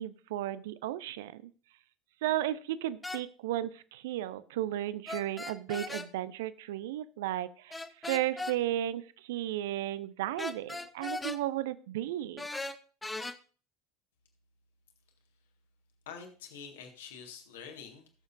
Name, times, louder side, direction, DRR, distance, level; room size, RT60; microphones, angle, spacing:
voice 1, 0.0-1.5 2.2-12.5, right 13 dB, 60° right, 17 dB, 0.5 m, -34 dB
sound 1, 3.0-3.2 5.1-6.1 7.7-8.6 10.4-11.4 12.4-13.3, left 2 dB, 10° left, 0.7 m, -38 dB
voice 2, 16.1-18.1, left 6 dB, 65° left, 3 dB, 1.8 m, -46 dB
18.0 x 7.0 x 2.6 m, 0.38 s
figure-of-eight pair, 70°, 0 cm